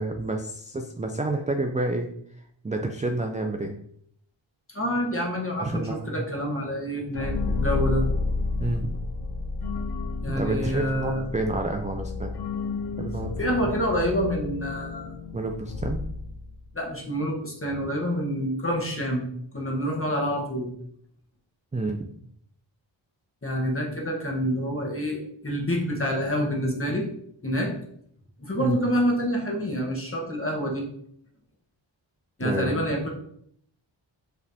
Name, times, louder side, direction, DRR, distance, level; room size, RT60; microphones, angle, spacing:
voice 1, 0.0-2.1 2.6-3.7 5.6-6.3 8.6-8.9 10.3-12.4 13.0-13.3 15.3-16.0 21.7-22.1 28.6-28.8 32.4-32.8, right 2 dB, 20° right, 3 dB, 0.3 m, -29 dB
voice 2, 4.7-8.0 10.2-11.2 13.4-15.2 16.7-19.3 19.5-20.7 23.4-27.1 27.4-27.7 28.4-30.9 32.4-33.1, equal, 25° left, -1 dB, 1.2 m, -27 dB
sound 1, 7.1-16.8, left 3 dB, 55° left, 0.5 m, -31 dB
4.9 x 3.3 x 2.7 m, 0.68 s
wide cardioid pair, 50°, 48 cm